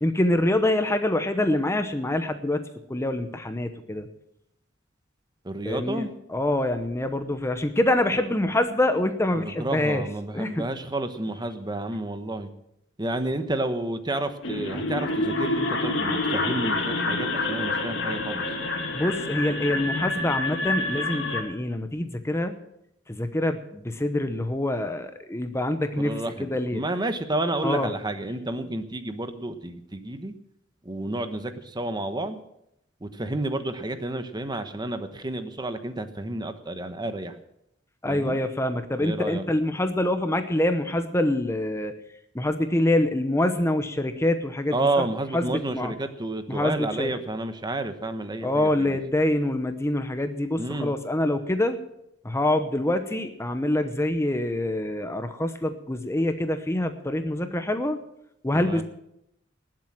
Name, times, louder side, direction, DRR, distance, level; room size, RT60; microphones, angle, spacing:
voice 1, 0.0-2.6 2.9-4.1 5.6-10.0 10.3-10.7 18.9-22.6 23.1-26.8 27.6-27.9 38.0-41.9 42.3-45.0 45.3-45.9 46.5-47.1 48.4-51.8 52.2-58.0 58.4-58.8, left 1 dB, 15° left, 9 dB, 0.9 m, -25 dB
voice 2, 5.4-6.1 9.4-12.5 13.0-18.5 26.0-30.3 30.8-32.4 33.0-37.3 38.1-38.4 39.0-39.4 44.7-49.0 50.6-50.9 58.5-58.8, right 2 dB, 20° right, 9 dB, 1.1 m, -30 dB
sound 1, 14.4-21.4, left 2 dB, 65° left, 2.4 m, -27 dB
19.5 x 7.7 x 7.3 m, 0.80 s
head